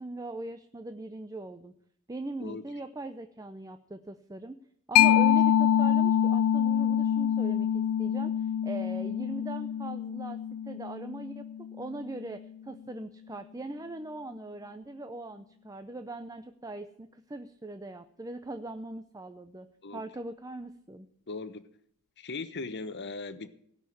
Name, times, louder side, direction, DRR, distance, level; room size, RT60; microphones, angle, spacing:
voice 1, 0.0-1.7 2.1-4.6 4.9-19.7 19.9-21.1, right 2 dB, 15° right, 9 dB, 0.6 m, -40 dB
Mallet percussion, 5.0-12.2, left 9 dB, 90° left, 0.4 m, -26 dB
voice 2, 21.3-21.6 22.2-23.5, left 3 dB, 50° left, 12 dB, 1.0 m, -38 dB
17.0 x 5.7 x 9.9 m, 0.69 s
head